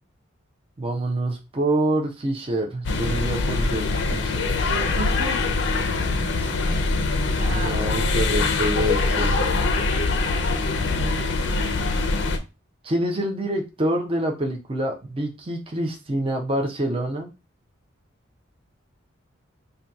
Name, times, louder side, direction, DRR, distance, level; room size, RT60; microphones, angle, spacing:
voice 1, 0.8-4.6 7.5-9.3 12.8-17.3, right 1 dB, 25° right, 3 dB, 0.5 m, -26 dB
sound 1, 2.8-12.4, left 3 dB, 55° left, 0.5 m, -23 dB
voice 2, 4.7-5.4 5.9-8.8 10.8-11.2, right 2 dB, 50° right, 0 dB, 0.8 m, -35 dB
2.7 x 2.2 x 3.5 m, 0.27 s
head